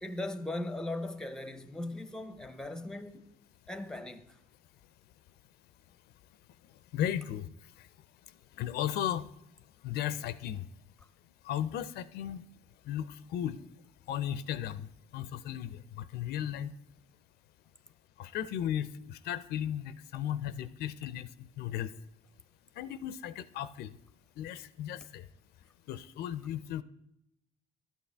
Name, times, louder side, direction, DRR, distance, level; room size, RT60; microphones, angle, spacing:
voice 1, 0.0-3.3 3.7-4.4, left 2 dB, 5° left, 0.6 m, -38 dB
voice 2, 6.9-7.5 8.6-9.3 9.8-10.7 11.4-12.4 12.9-13.6 14.1-16.7 18.2-21.9 22.8-23.9 24.4-25.3 25.9-26.8, left 10 dB, 70° left, 0.5 m, -35 dB
12.5 x 8.7 x 3.4 m
cardioid pair, 110°, 17 cm